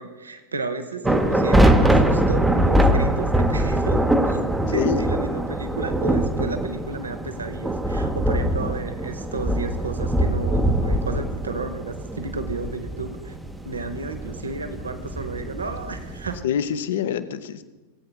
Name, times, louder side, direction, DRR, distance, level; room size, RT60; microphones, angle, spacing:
voice 1, 0.0-4.4 4.7-13.4 13.6-16.4, right 3 dB, 75° right, 8 dB, 0.7 m, -33 dB
sound 1, 1.0-16.4, right 1 dB, 5° right, 0.6 m, -22 dB
voice 2, 16.4-17.6, left 9 dB, 60° left, 13 dB, 0.6 m, -25 dB
17.0 x 8.6 x 2.3 m, 1.2 s
figure-of-eight pair, 90°, 0 cm